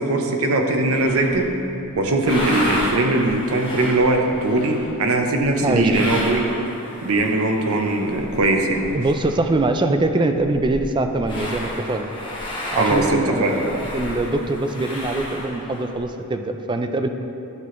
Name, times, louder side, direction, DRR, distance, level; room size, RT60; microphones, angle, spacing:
voice 1, 0.0-1.5 2.0-6.4 7.0-8.9 12.8-13.6, right 2 dB, 70° right, 3 dB, 0.7 m, -20 dB
sound 1, 0.9-1.5 1.9-9.7 10.0-10.1 10.3-16.0, equal, 20° left, 1.3 m, -32 dB
voice 2, 5.6-6.0 8.9-12.1 12.7-17.1, right 2 dB, 20° right, 6 dB, 0.3 m, -23 dB
10.5 x 5.8 x 3.1 m, 2.8 s
head